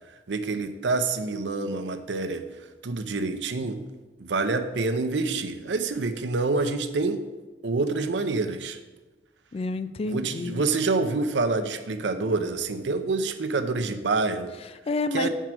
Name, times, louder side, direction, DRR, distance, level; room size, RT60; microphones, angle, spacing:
voice 1, 0.3-2.5 2.8-3.8 4.2-7.2 7.6-8.8 10.0-14.5 15.1-15.3, right 3 dB, 85° right, 8 dB, 0.6 m, -27 dB
voice 2, 9.5-10.6 14.6-15.3, left 3 dB, 35° left, 12 dB, 0.3 m, -29 dB
7.5 x 4.6 x 5.9 m, 1.2 s
head